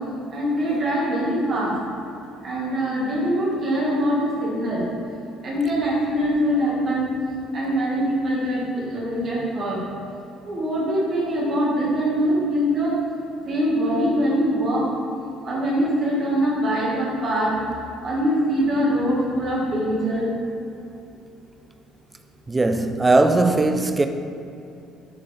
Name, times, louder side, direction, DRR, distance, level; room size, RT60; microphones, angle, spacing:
voice 1, 0.3-1.7 2.4-4.8 5.4-7.1 7.5-9.8 10.5-12.9 13.5-14.9 15.4-17.6 18.0-20.3, equal, 35° right, 1.6 m, -23 dB
voice 2, 22.5-24.1, right 2 dB, 15° right, 0.4 m, -19 dB
7.6 x 5.7 x 3.3 m
cardioid pair, 155°, 0 cm